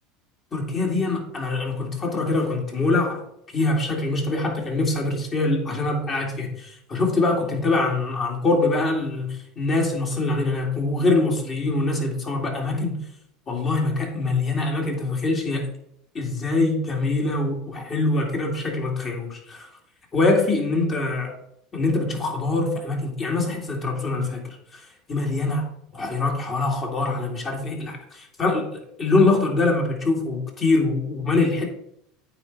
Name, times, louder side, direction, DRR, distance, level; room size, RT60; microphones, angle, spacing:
voice 1, 0.5-3.2 3.5-13.0 13.5-15.7 16.1-19.7 20.1-21.3 21.7-24.8 25.1-31.6, left 2 dB, 35° left, 0 dB, 2.4 m, -24 dB
8.9 x 4.1 x 4.7 m, 0.73 s
supercardioid pair, 95°, 0 cm